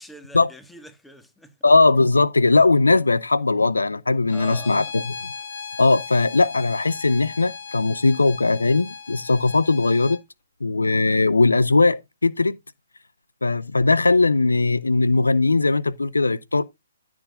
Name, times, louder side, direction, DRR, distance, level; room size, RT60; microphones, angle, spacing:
voice 1, 0.0-1.6 4.3-4.9, equal, 5° left, 1.6 m, -43 dB
voice 2, 1.6-5.0 5.8-10.2 10.6-12.6 13.4-16.6, left 3 dB, 80° left, 0.7 m, -19 dB
Bowed string instrument, 4.3-10.2, left 5 dB, 55° left, 1.9 m, -37 dB
14.0 x 6.2 x 2.5 m
figure-of-eight pair, 130°, 0 cm